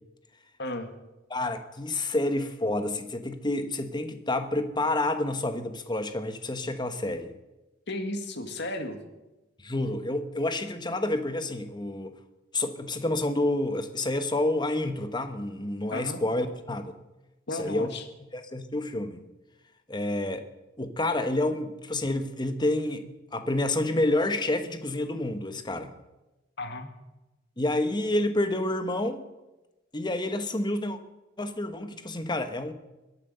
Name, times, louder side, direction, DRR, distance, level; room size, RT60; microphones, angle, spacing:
voice 1, 1.3-7.3 9.6-12.2 12.5-16.9 17.5-17.9 18.3-19.2 19.9-20.4 20.8-25.9 27.6-29.2 29.9-31.0 31.4-32.7, left 1 dB, 25° left, 9 dB, 1.2 m, -29 dB
voice 2, 7.9-9.0 15.9-16.2 17.5-18.0 26.6-26.9, left 1 dB, 60° left, 6 dB, 1.9 m, -34 dB
22.0 x 8.5 x 6.8 m, 1.0 s
head